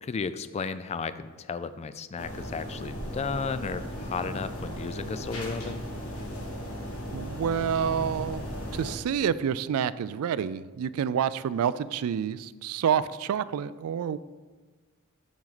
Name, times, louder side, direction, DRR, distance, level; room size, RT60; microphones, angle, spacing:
voice 1, 0.0-5.8, left 5 dB, 30° left, 13 dB, 0.3 m, -34 dB
sound 1, 2.2-8.9, equal, 80° left, 1.5 m, -36 dB
voice 2, 7.1-8.4 8.7-14.2, right 8 dB, 75° right, 17 dB, 0.3 m, -28 dB
7.2 x 6.3 x 4.0 m, 1.3 s
head